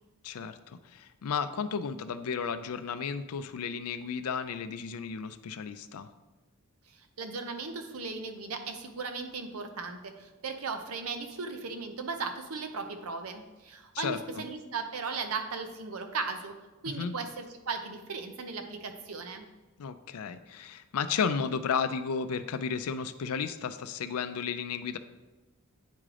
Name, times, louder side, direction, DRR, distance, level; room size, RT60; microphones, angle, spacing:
voice 1, 0.2-6.1 13.9-14.4 17.0-17.1 19.8-25.0, left 6 dB, 75° left, 11 dB, 0.4 m, -33 dB
voice 2, 7.2-16.6 16.8-19.4, right 4 dB, 75° right, 6 dB, 0.7 m, -37 dB
9.2 x 3.7 x 3.3 m, 1.1 s
head